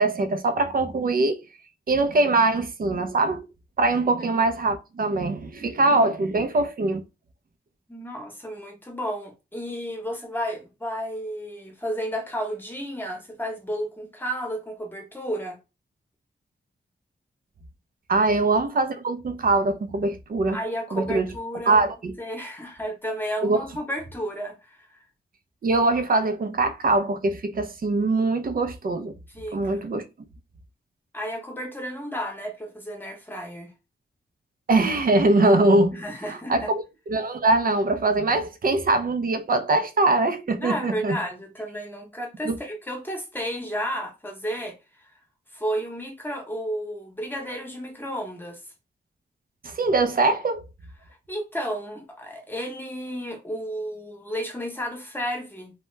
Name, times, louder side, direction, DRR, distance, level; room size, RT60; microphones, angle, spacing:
voice 1, 0.0-1.4 1.9-3.4 3.8-7.0 18.1-20.6 20.9-21.3 21.7-22.1 23.4-23.6 25.6-29.2 29.5-30.1 34.7-36.0 36.3-36.7 37.1-41.2 42.5-42.6 49.6-50.6, right 2 dB, 45° right, 0.5 m, -22 dB
voice 2, 7.9-15.6 18.2-18.3 20.5-21.8 22.2-24.9 29.3-29.8 31.1-33.7 35.9-36.7 40.6-44.8 45.0-45.1 45.5-48.6 51.3-55.7, equal, 10° left, 0.9 m, -32 dB
2.8 x 2.2 x 3.1 m
wide cardioid pair, 100°, 20 cm